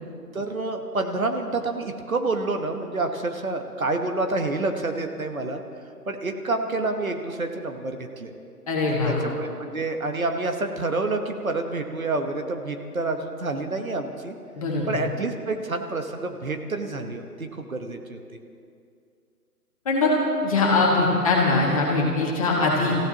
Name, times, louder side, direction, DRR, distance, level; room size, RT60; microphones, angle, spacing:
voice 1, 0.3-5.6 6.1-8.3 9.0-14.4 14.9-18.2, right 2 dB, 60° right, 5 dB, 1.4 m, -28 dB
voice 2, 8.7-9.2 14.6-14.9 19.9-20.1 20.4-23.0, left 3 dB, 20° left, -3 dB, 2.1 m, -21 dB
26.0 x 15.5 x 3.0 m, 2.4 s
figure-of-eight pair, 150°, 47 cm